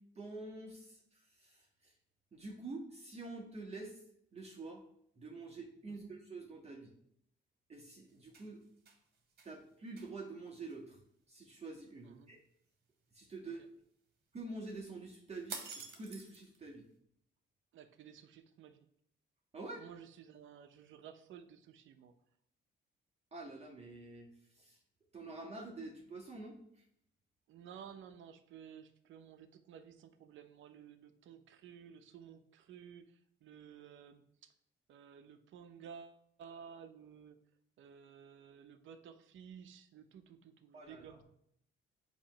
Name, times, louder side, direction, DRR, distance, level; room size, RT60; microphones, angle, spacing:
voice 1, 0.1-1.9 2.3-4.0 4.3-4.8 5.2-6.9 7.7-8.6 9.4-11.0 11.3-12.4 13.1-13.6 14.3-15.6 15.9-16.8 19.5-19.8 23.3-24.3 24.6-24.8 25.1-26.6 40.7-41.2, right 3 dB, 30° right, -2 dB, 1.5 m, -47 dB
sound 1, 8.1-9.0 9.4-9.5 10.0-10.1 10.5-10.7 15.5-16.6, right 5 dB, 55° right, 1.8 m, -47 dB
voice 2, 17.7-18.9 19.7-22.2 27.5-34.5 34.9-37.4 37.8-41.2, right 8 dB, 80° right, 10 dB, 0.8 m, -54 dB
8.5 x 3.2 x 5.7 m, 0.72 s
cardioid pair, 90°, 20 cm